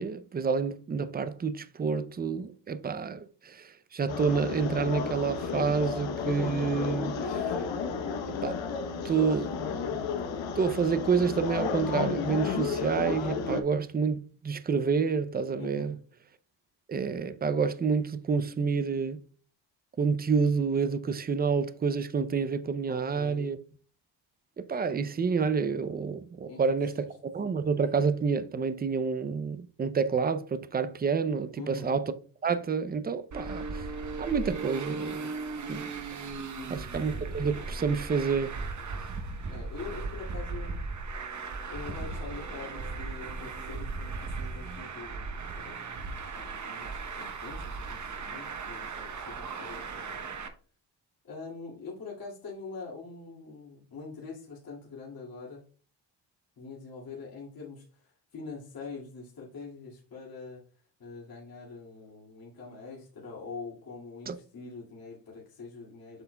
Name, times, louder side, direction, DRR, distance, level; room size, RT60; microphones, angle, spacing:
voice 1, 0.0-7.6 8.4-8.6 9.0-9.6 10.5-16.0 16.9-19.2 20.0-23.6 24.6-32.1 32.4-33.9 34.2-35.3 35.7-35.9 36.7-38.6 64.3-64.4, right 5 dB, 20° right, 0.5 m, -29 dB
sound 1, 4.1-13.6, left 5 dB, 85° left, 1.0 m, -32 dB
voice 2, 15.6-16.0 22.9-23.5 26.5-26.6 27.0-27.1 31.6-31.9 36.6-36.9 39.5-40.8 41.7-45.8 46.4-50.2 51.3-55.6 56.6-57.8 58.3-60.6 61.0-66.2, left 4 dB, 50° left, 2.3 m, -44 dB
Traffic noise roadway noise, 33.3-50.5, right 4 dB, 40° right, 1.0 m, -37 dB
7.9 x 5.8 x 2.3 m
cardioid pair, 100°, 44 cm